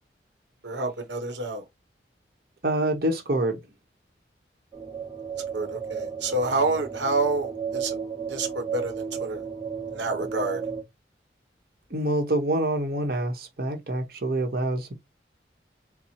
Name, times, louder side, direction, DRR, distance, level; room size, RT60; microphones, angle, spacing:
voice 1, 0.6-1.7 5.5-8.0 8.3-9.4 9.9-10.6, right 2 dB, 85° right, 0.8 m, -28 dB
voice 2, 2.6-3.6 11.9-14.9, right 1 dB, 55° right, 0.9 m, -26 dB
sound 1, 4.7-10.8, right 6 dB, 20° right, 1.1 m, -34 dB
4.3 x 2.0 x 4.2 m
head